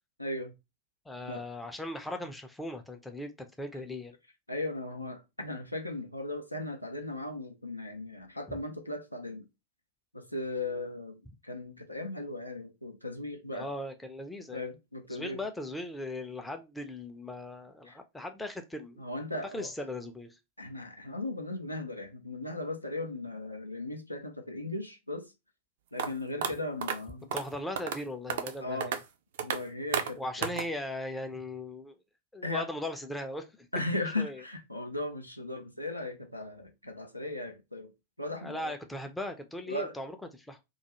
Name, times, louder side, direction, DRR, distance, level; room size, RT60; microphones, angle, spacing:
voice 1, 0.2-0.5 1.3-1.4 4.5-9.5 10.1-11.2 11.4-13.7 14.5-15.5 17.9-18.0 19.0-19.7 20.6-25.3 25.9-27.3 28.6-29.0 29.4-30.5 32.4-32.7 33.7-37.9 38.2-38.7 39.7-39.9, left 2 dB, 85° left, 0.4 m, -37 dB
voice 2, 1.1-4.2 8.5-8.6 13.5-14.7 15.1-19.0 19.5-20.3 27.3-28.9 30.2-32.0 32.3-33.7 34.2-34.4 38.4-40.6, left 1 dB, 5° left, 0.4 m, -38 dB
sound 1, 26.0-26.1 26.4-26.5 26.8-27.0 27.3-27.5 27.8-28.0 28.3-28.5 28.8-29.0 29.4-29.6 29.9-30.1 30.4-30.6, right 7 dB, 55° right, 0.4 m, -31 dB
2.3 x 2.3 x 2.9 m
figure-of-eight pair, 90°, 0 cm